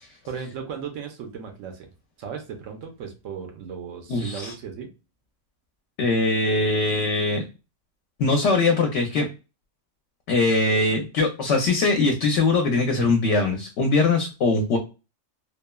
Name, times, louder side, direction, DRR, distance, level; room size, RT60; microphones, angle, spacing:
voice 1, 0.3-1.9 2.2-4.9, right 7 dB, 85° right, 4 dB, 1.0 m, -36 dB
voice 2, 4.1-4.5 6.0-7.4 8.2-9.3 10.3-14.8, left 3 dB, 70° left, 4 dB, 0.8 m, -21 dB
3.0 x 2.0 x 2.2 m, 0.30 s
omnidirectional pair, 1.3 m